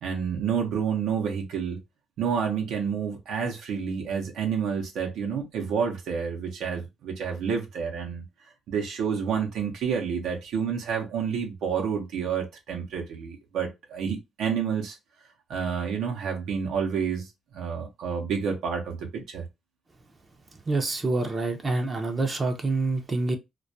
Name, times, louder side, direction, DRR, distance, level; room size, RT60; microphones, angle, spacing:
voice 1, 0.0-1.8 2.2-8.2 8.7-15.0 15.5-19.4, right 6 dB, 80° right, 0.6 m, -29 dB
voice 2, 20.7-23.4, right 3 dB, 30° right, 0.5 m, -26 dB
2.2 x 2.1 x 2.6 m
cardioid pair, 90°, 0 cm